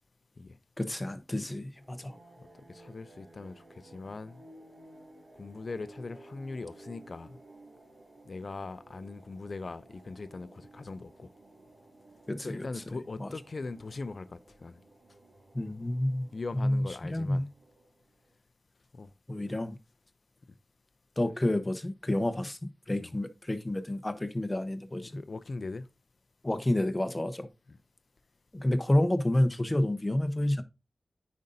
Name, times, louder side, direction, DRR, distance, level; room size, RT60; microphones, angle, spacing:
voice 1, 0.8-2.1 12.3-12.7 13.2-13.3 15.5-17.5 19.3-19.8 21.2-25.2 26.4-27.5 28.5-30.6, left 1 dB, 20° left, 0.8 m, -29 dB
sound 1, 1.8-18.3, right 2 dB, 65° right, 2.3 m, -56 dB
voice 2, 2.7-4.4 5.4-7.4 8.3-11.3 12.4-14.8 16.3-17.5 18.9-19.1 21.4-21.5 23.0-23.1 25.0-25.9 27.7-27.8, left 3 dB, 55° left, 0.4 m, -40 dB
9.2 x 5.2 x 2.7 m
wide cardioid pair, 90°, 0 cm